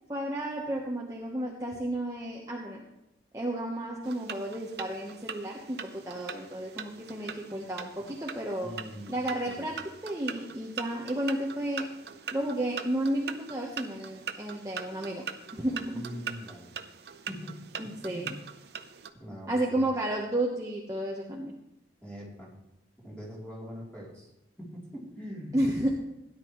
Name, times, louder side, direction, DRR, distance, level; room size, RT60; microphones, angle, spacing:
voice 1, 0.1-2.8 3.3-8.7 9.1-9.8 10.0-11.9 12.3-15.2 15.5-16.1 17.8-18.4 19.5-21.5 25.5-25.9, right 1 dB, 20° right, -2 dB, 1.1 m, -32 dB
sound 1, 4.0-19.1, right 6 dB, 65° right, 0.7 m, -42 dB
voice 2, 8.6-9.2 9.4-9.7 15.9-16.7 17.3-17.6 17.8-18.3 19.1-19.8 22.0-22.5 23.0-24.3 24.6-25.6, equal, 5° left, -6 dB, 3.3 m, -42 dB
16.5 x 10.5 x 3.1 m, 0.88 s
head